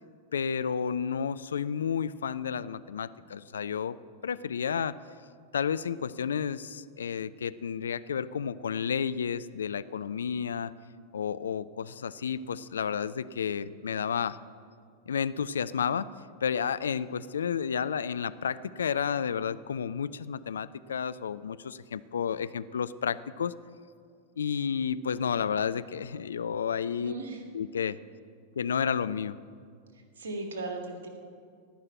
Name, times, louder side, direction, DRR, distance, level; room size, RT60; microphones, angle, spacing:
voice 1, 0.3-4.0 4.2-4.9 5.5-10.7 11.1-14.4 15.1-16.1 16.4-23.5 24.4-27.1 27.5-28.0 28.6-29.4, left 7 dB, 70° left, 14 dB, 0.3 m, -31 dB
voice 2, 27.0-27.4 30.2-31.1, right 3 dB, 65° right, 2 dB, 2.0 m, -37 dB
17.0 x 5.7 x 9.0 m, 2.2 s
figure-of-eight pair, 90°, 0 cm